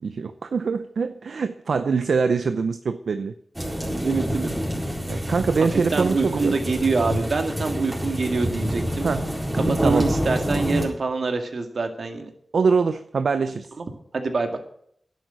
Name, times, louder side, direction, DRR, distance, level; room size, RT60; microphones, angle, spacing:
voice 1, 0.0-3.3 5.0-6.6 9.0-9.3 9.8-10.1 12.5-13.7, right 5 dB, 85° right, 10 dB, 0.6 m, -23 dB
sound 1, 3.5-10.9, equal, 10° right, 4.2 m, -27 dB
voice 2, 3.9-4.5 5.7-9.1 9.5-12.3 13.8-13.9 14.1-14.6, right 3 dB, 70° right, 5 dB, 2.0 m, -25 dB
11.0 x 8.3 x 9.3 m, 0.67 s
wide cardioid pair, 90°, 0 cm